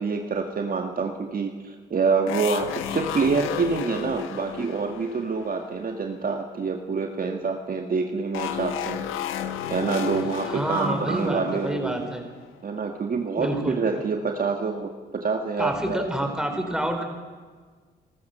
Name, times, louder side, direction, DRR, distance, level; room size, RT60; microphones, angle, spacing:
voice 1, 0.0-9.0 9.7-12.1 12.6-16.3 16.6-16.7, right 4 dB, 45° right, 4 dB, 1.8 m, -27 dB
sound 1, 2.3-6.2 8.3-12.7, left 9 dB, 90° left, 1.3 m, -33 dB
voice 2, 10.5-12.2 13.4-13.8 15.6-17.0, equal, 5° right, 5 dB, 4.5 m, -28 dB
29.5 x 13.5 x 6.8 m, 1.5 s
cardioid pair, 70°, 20 cm